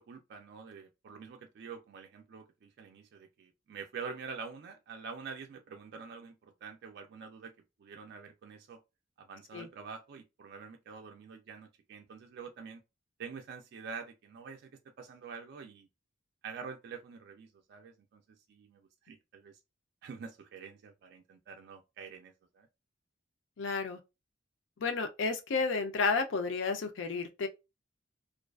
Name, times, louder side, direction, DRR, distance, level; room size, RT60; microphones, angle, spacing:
voice 1, 0.0-7.5 7.8-8.8 9.2-12.8 13.2-14.7 15.0-15.9 16.4-18.2 18.5-19.6 20.0-22.7, right 5 dB, 55° right, 0.3 m, -46 dB
voice 2, 23.6-24.0 24.8-27.5, left 4 dB, 70° left, 0.5 m, -31 dB
2.4 x 2.3 x 2.2 m
head